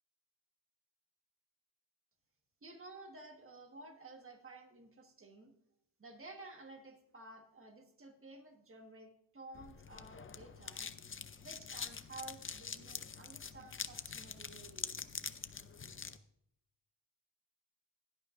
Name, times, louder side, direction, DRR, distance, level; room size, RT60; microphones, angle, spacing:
voice 1, 2.6-5.5 6.0-10.9 11.4-15.0, right 2 dB, 30° right, 4 dB, 1.5 m, -53 dB
sound 1, 9.5-16.2, left 6 dB, 30° left, 0.5 m, -45 dB
16.0 x 11.5 x 2.6 m, 0.78 s
wide cardioid pair, 135°, 45 cm